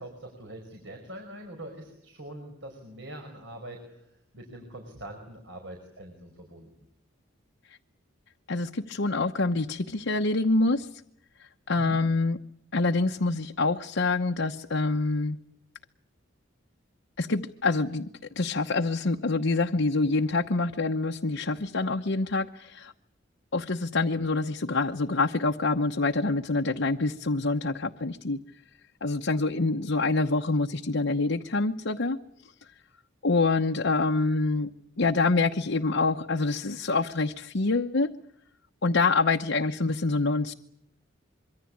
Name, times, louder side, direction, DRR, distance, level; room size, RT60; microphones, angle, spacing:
voice 1, 0.0-6.7 11.7-12.0, right 1 dB, 65° right, 3 dB, 5.1 m, -43 dB
voice 2, 8.5-10.9 11.4-12.4 12.7-15.4 17.2-18.1 18.4-22.9 23.5-28.4 29.0-32.2 33.2-34.7 35.0-38.1 38.8-40.5, left 3 dB, 65° left, 3 dB, 1.0 m, -26 dB
25.5 x 23.5 x 8.6 m, 0.73 s
head